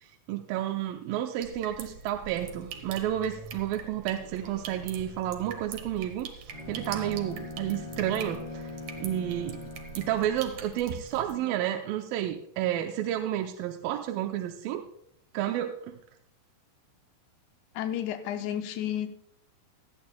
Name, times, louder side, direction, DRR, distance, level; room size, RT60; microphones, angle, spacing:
voice 1, 0.0-8.7 9.0-9.6 10.0-14.9 15.3-16.0, right 11 dB, 90° right, 5 dB, 2.4 m, -31 dB
sound 1, 1.4-11.3, right 6 dB, 65° right, 2.1 m, -43 dB
Bowed string instrument, 6.5-10.6, left 3 dB, 45° left, 2.3 m, -41 dB
voice 2, 17.8-19.2, left 10 dB, 85° left, 7 dB, 1.7 m, -32 dB
17.5 x 12.5 x 2.3 m, 0.68 s
omnidirectional pair, 4.1 m